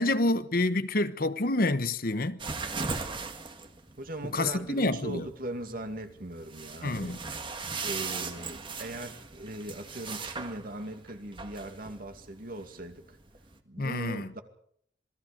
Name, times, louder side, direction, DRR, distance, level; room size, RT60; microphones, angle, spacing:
voice 1, 0.0-2.4 4.3-5.2 6.8-7.2 13.8-14.3, left 2 dB, 55° left, 1.1 m, -28 dB
sound 1, 2.4-13.6, right 4 dB, 30° right, 1.7 m, -39 dB
voice 2, 4.0-7.2 7.8-13.2 13.7-14.4, right 1 dB, 50° right, 2.5 m, -39 dB
27.0 x 19.5 x 5.2 m
head